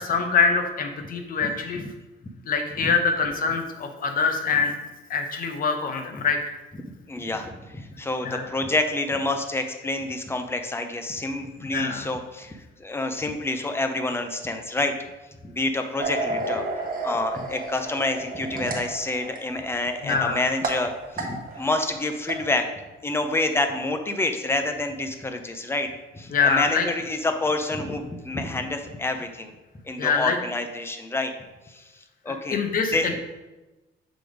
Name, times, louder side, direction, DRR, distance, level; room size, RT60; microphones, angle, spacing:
voice 1, 0.0-1.8 2.5-4.7 5.1-6.4 8.2-8.4 11.7-12.0 20.0-20.4 26.3-26.8 30.0-30.4 32.3-33.0, left 5 dB, 45° left, 5 dB, 0.8 m, -24 dB
voice 2, 1.4-1.9 2.8-2.9 7.1-14.9 15.4-16.7 17.0-22.6 23.0-29.5 29.8-31.3 31.7-31.8 32.2-32.6 32.9-33.1, left 2 dB, 10° left, 6 dB, 0.5 m, -28 dB
sound 1, 16.0-21.9 22.2-22.4, right 2 dB, 45° right, 0.9 m, -32 dB
6.1 x 3.4 x 4.9 m, 1.1 s
cardioid pair, 145°, 20 cm